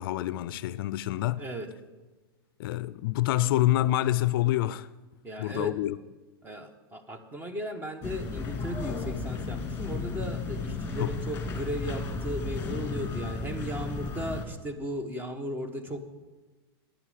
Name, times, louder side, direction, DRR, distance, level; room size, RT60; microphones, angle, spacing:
voice 1, 0.0-1.4 2.6-4.9 5.4-6.0 11.0-11.1, left 15 dB, 60° left, 0.4 m, -27 dB
voice 2, 1.4-1.7 5.2-5.7 6.4-16.0, equal, 15° right, 1.1 m, -36 dB
sound 1, 8.0-14.4, left 4 dB, 20° left, 2.0 m, -34 dB
13.5 x 10.0 x 5.0 m
hypercardioid pair, 130°, 13 cm